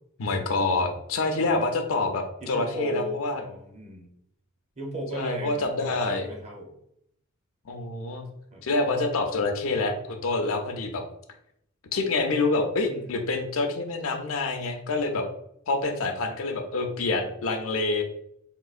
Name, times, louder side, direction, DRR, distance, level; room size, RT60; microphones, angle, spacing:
voice 1, 0.2-3.4 5.1-6.3 7.7-8.2 8.6-11.0 11.9-15.3 15.7-18.0, left 3 dB, 75° left, 5 dB, 0.5 m, -27 dB
voice 2, 1.4-1.7 2.4-4.1 4.8-6.8 8.5-8.6 12.9-13.1, right 1 dB, 30° right, 1 dB, 0.6 m, -36 dB
3.7 x 2.4 x 2.4 m, 0.75 s
head